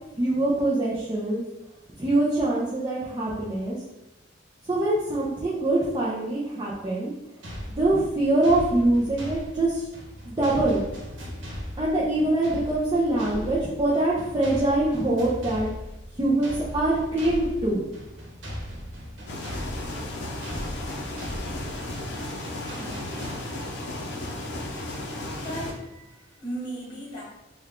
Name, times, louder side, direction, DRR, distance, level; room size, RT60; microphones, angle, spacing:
voice 1, 0.1-1.4 2.0-3.8 4.7-7.1 7.7-9.8 10.2-10.8 11.8-15.7 16.2-17.9, right 2 dB, 25° right, -7 dB, 0.5 m, -24 dB
sound 1, 7.4-23.9, equal, 75° right, 1.0 m, -39 dB
sound 2, 19.3-25.7, left 1 dB, 60° left, 0.5 m, -34 dB
voice 2, 25.2-27.2, right 1 dB, 25° left, -5 dB, 1.2 m, -36 dB
3.4 x 2.3 x 3.5 m, 0.96 s
head